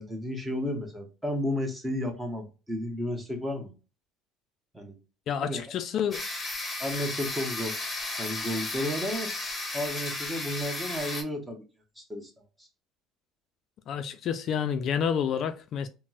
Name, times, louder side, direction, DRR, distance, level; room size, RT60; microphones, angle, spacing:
voice 1, 0.0-3.7 4.7-5.0 5.4-5.6 6.8-7.8 8.2-9.3 9.7-11.6 12.0-12.3 12.6-12.7, left 1 dB, 10° right, 0.9 m, -32 dB
voice 2, 5.3-6.3 13.9-15.9, left 8 dB, 50° left, 0.3 m, -29 dB
sound 1, 6.1-11.2, left 2 dB, 20° left, 0.9 m, -34 dB
4.1 x 2.0 x 2.4 m
cardioid pair, 125°, 0 cm